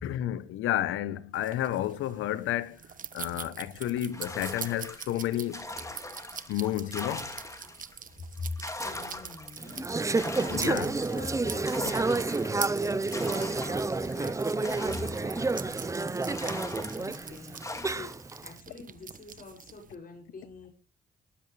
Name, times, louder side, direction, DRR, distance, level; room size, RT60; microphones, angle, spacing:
voice 1, 0.0-2.8 3.1-5.7 6.5-7.3 10.5-10.9, left 13 dB, 85° left, 1.1 m, -31 dB
sound 1, 1.3-19.9, right 7 dB, 40° right, 1.3 m, -44 dB
sound 2, 4.1-8.0 8.3-15.9 16.3-18.2, left 2 dB, 15° left, 2.5 m, -41 dB
voice 2, 8.1-18.2 18.4-20.7, left 3 dB, 45° left, 7.3 m, -44 dB
Conversation / Chatter, 9.6-18.5, right 3 dB, 15° right, 0.6 m, -30 dB
19.0 x 11.0 x 3.4 m
cardioid pair, 90°, 20 cm